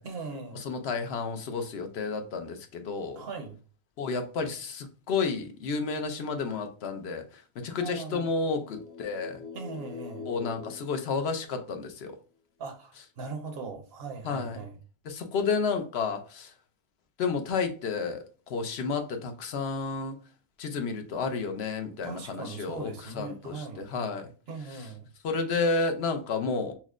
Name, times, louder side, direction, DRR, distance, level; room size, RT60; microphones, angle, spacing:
voice 1, 0.0-0.6 3.2-3.6 7.8-8.3 9.5-10.3 12.6-14.7 22.0-23.9 24.5-25.1, right 4 dB, 70° right, 0.9 m, -39 dB
voice 2, 0.5-3.2 4.0-9.4 10.3-12.2 14.2-14.6 15.0-16.5 17.2-20.2 20.6-24.3 25.2-26.7, left 4 dB, 75° left, 0.9 m, -31 dB
sound 1, 8.0-11.9, left 5 dB, 55° left, 1.0 m, -44 dB
5.7 x 2.1 x 2.4 m
omnidirectional pair, 1.1 m